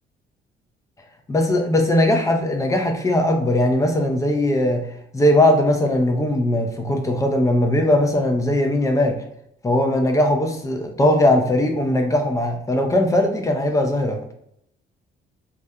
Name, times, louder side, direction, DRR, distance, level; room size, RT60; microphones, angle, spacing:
voice 1, 1.3-4.9 5.1-9.2 9.6-14.2, left 1 dB, 15° left, 4 dB, 0.5 m, -19 dB
2.4 x 2.1 x 2.7 m, 0.73 s
cardioid pair, 90°, 20 cm